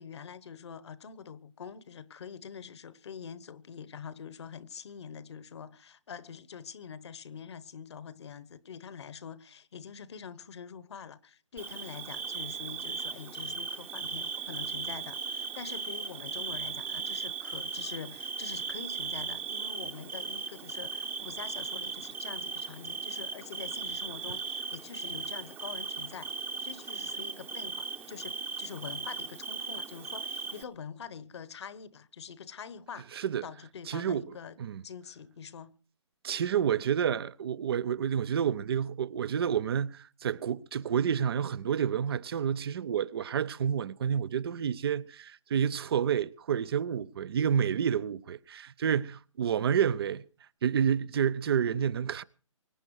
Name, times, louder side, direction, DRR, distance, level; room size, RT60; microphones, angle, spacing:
voice 1, 0.0-26.3 26.6-34.6 34.8-35.7, left 7 dB, 60° left, 1.2 m, -45 dB
Bird / Cricket, 11.6-30.6, right 4 dB, 10° right, 0.9 m, -37 dB
voice 2, 33.1-33.5 33.9-34.8 36.2-50.2 50.6-52.2, right 8 dB, 50° right, 0.7 m, -29 dB
24.5 x 9.7 x 4.7 m
figure-of-eight pair, 140°, 16 cm